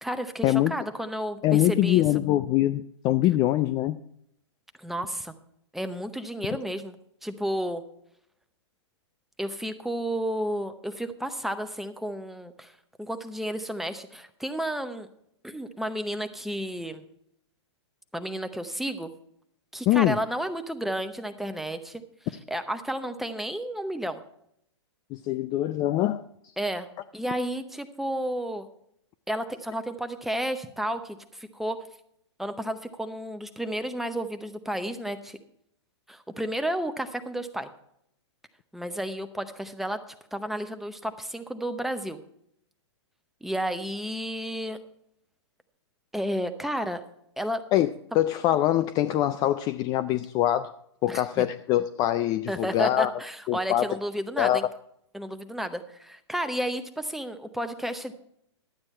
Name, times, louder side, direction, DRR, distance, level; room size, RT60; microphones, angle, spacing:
voice 1, 0.0-2.0 4.8-5.3 5.7-7.0 7.2-7.8 9.4-12.7 13.0-15.1 15.4-17.0 18.1-19.1 19.7-22.0 22.5-24.2 26.6-26.9 27.1-28.7 29.3-31.8 32.4-35.4 36.1-37.7 38.7-40.0 40.3-42.2 43.4-44.8 46.1-47.0 47.4-47.6 51.1-51.5 52.5-54.6 55.1-58.1, right 1 dB, ahead, 8 dB, 0.7 m, -32 dB
voice 2, 1.4-4.0 19.9-20.2 25.1-26.2 47.7-47.9 48.1-50.7 51.0-53.1 53.5-53.9 54.4-54.6, left 13 dB, 25° left, 13 dB, 0.3 m, -23 dB
12.0 x 8.8 x 4.3 m, 0.73 s
hypercardioid pair, 120°, 15 cm